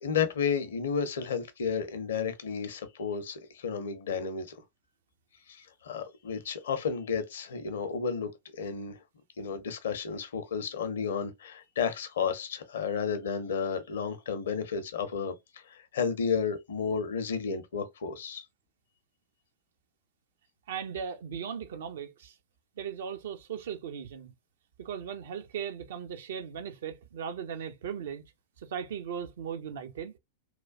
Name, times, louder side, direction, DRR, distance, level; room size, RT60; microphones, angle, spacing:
voice 1, 0.0-4.6 5.5-9.0 9.4-18.4, left 6 dB, 65° left, 0.6 m, -32 dB
voice 2, 20.7-22.4 22.8-24.3 24.8-28.2 28.6-30.2, right 7 dB, 60° right, 0.5 m, -38 dB
3.0 x 2.2 x 2.4 m
figure-of-eight pair, 90°, 0 cm